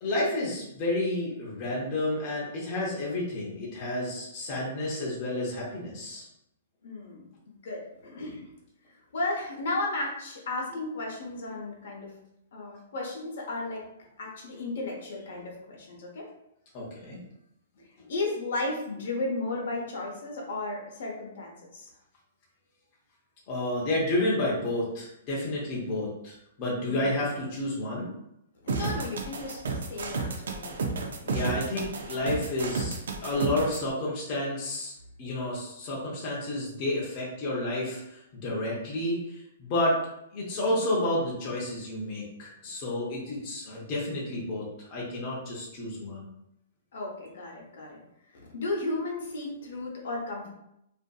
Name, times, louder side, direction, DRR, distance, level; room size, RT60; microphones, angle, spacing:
voice 1, 0.0-6.3 16.7-17.2 23.5-28.1 31.2-33.0 33.2-34.9 35.2-40.0 40.3-46.2, left 1 dB, 30° left, -5 dB, 0.6 m, -30 dB
voice 2, 6.8-8.4 9.1-12.1 12.5-13.8 14.2-16.3 18.1-21.9 26.8-27.2 28.6-30.9 46.9-48.0 48.3-50.5, left 2 dB, 65° left, -1 dB, 0.8 m, -34 dB
sound 1, 28.7-33.8, right 4 dB, 80° right, 0.4 m, -31 dB
2.6 x 2.5 x 2.3 m, 0.80 s
hypercardioid pair, 165°, 0 cm